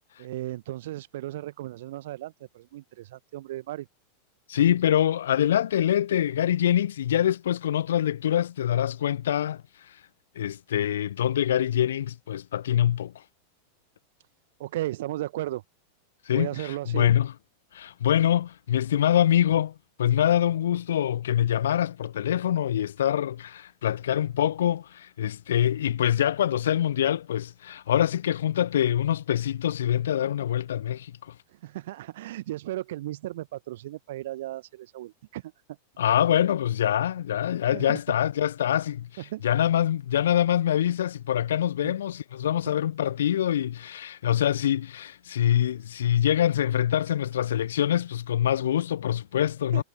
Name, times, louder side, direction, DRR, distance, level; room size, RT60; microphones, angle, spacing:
voice 1, 0.2-3.9 14.6-15.6 16.3-17.1 31.5-35.5 37.7-38.0 39.3-39.4 41.8-41.9 49.7-49.8, right 15 dB, 55° right, 0.9 m, -35 dB
voice 2, 4.5-10.0 10.3-13.2 16.2-17.3 17.7-31.4 36.0-49.8, left 10 dB, 60° left, 0.7 m, -25 dB
figure-of-eight pair, 90°, 0 cm